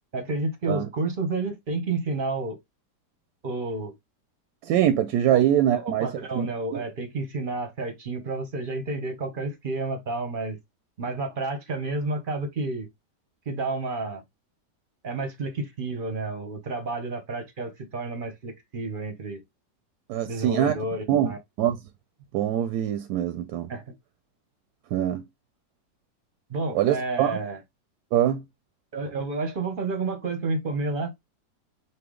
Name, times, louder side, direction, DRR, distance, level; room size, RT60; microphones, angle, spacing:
voice 1, 0.1-2.6 3.4-3.9 5.3-5.4 5.7-10.6 11.0-12.9 13.5-14.2 15.0-19.4 20.2-21.4 23.7-23.9 26.5-27.6 28.9-31.1, right 3 dB, 45° right, 0.7 m, -30 dB
voice 2, 4.6-6.1 6.3-6.5 6.7-6.8 20.1-20.7 21.1-21.3 21.6-21.8 22.3-23.7 24.9-25.2 26.7-27.4 28.1-28.4, right 11 dB, 70° right, 1.0 m, -23 dB
5.6 x 2.0 x 3.7 m
omnidirectional pair, 1.9 m